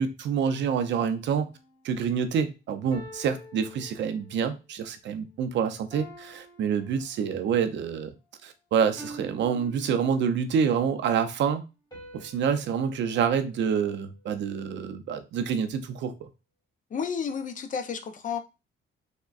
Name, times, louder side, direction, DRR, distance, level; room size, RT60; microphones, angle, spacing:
voice 1, 0.0-1.5 1.8-8.1 8.4-11.6 12.1-16.1, right 7 dB, 65° right, 0.5 m, -27 dB
sound 1, 1.4-1.8 2.9-4.5 5.9-7.6 9.0-10.6 11.9-14.3, equal, 20° left, 1.4 m, -48 dB
voice 2, 16.9-18.4, left 6 dB, 40° left, 0.5 m, -31 dB
3.5 x 2.1 x 2.3 m
cardioid pair, 90°, 20 cm